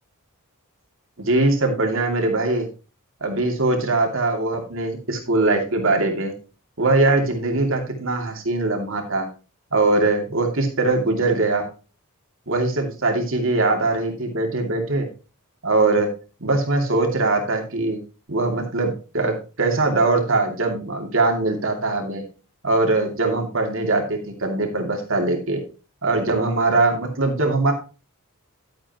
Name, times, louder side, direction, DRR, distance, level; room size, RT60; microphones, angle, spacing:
voice 1, 1.2-2.7 3.2-6.3 6.8-9.3 9.7-11.7 12.5-15.1 15.6-16.1 16.4-18.0 18.3-22.2 22.6-25.6 26.0-27.7, right 2 dB, 60° right, 3 dB, 2.6 m, -21 dB
11.5 x 8.9 x 3.0 m, 0.33 s
head